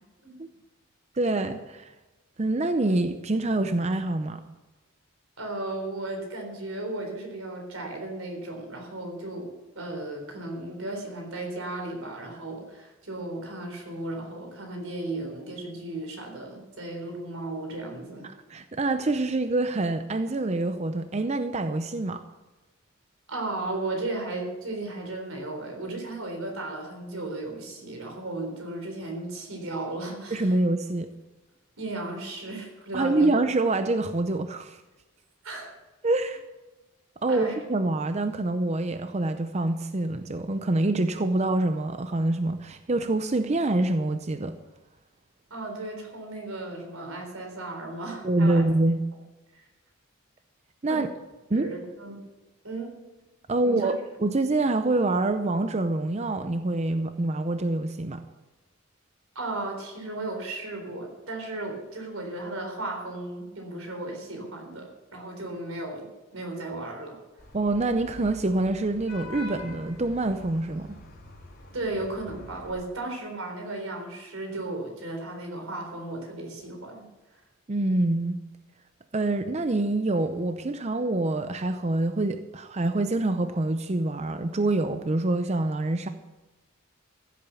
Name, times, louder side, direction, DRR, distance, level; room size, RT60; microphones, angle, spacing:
voice 1, 1.1-1.9 2.4-4.4 18.5-22.2 30.3-31.1 32.9-34.8 36.0-36.4 37.2-44.5 48.2-49.0 50.8-51.1 51.5-51.7 53.5-58.2 67.5-70.9 77.7-78.4 79.1-86.1, right 2 dB, 30° right, 9 dB, 0.6 m, -26 dB
voice 2, 5.4-18.3 23.3-30.5 31.8-33.3 35.4-35.7 37.3-37.5 45.5-48.6 50.9-51.0 51.5-52.2 52.6-53.0 53.6-53.9 59.4-67.2 71.7-77.1, right 2 dB, 85° right, 2 dB, 3.9 m, -35 dB
Vehicle horn car horn honking / Traffic noise roadway noise, 67.4-72.7, left 1 dB, 45° left, 3.8 m, -45 dB
15.5 x 8.4 x 7.0 m, 1.1 s
head